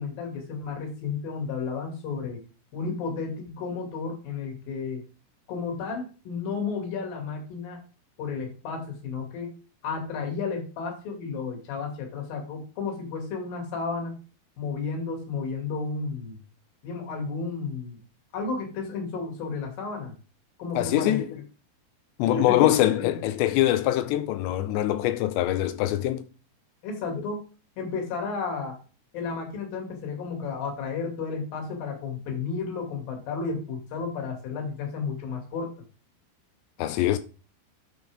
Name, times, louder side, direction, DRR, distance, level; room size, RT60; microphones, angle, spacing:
voice 1, 0.0-2.4 2.7-5.0 5.5-7.8 8.2-9.5 9.8-14.2 14.6-16.4 16.8-18.0 18.3-20.1 20.6-21.4 22.3-23.1 26.8-27.4 27.8-28.8 29.1-35.7, left 4 dB, 55° left, 3.7 m, -32 dB
voice 2, 20.8-21.3 22.2-26.2 36.8-37.2, left 14 dB, 85° left, 2.8 m, -23 dB
9.6 x 6.3 x 3.5 m
omnidirectional pair, 5.2 m